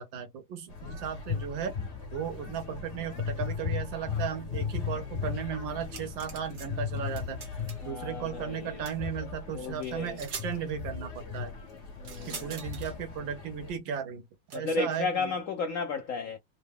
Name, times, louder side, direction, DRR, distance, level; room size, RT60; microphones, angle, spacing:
voice 1, 0.0-1.7 2.1-7.4 7.8-11.5 12.3-14.2 14.5-15.3, right 8 dB, 80° right, 1.7 m, -36 dB
sound 1, 0.7-13.8, left 6 dB, 40° left, 1.4 m, -37 dB
sound 2, 5.8-6.7 6.9-7.9 8.9-9.0 9.8-9.9 10.2-10.5 12.0-12.9 14.5-14.6, right 5 dB, 65° right, 1.6 m, -43 dB
voice 2, 7.8-8.8 9.5-10.2 12.0-12.6 14.5-16.4, left 4 dB, 80° left, 0.7 m, -33 dB
3.8 x 2.2 x 3.5 m
omnidirectional pair, 2.1 m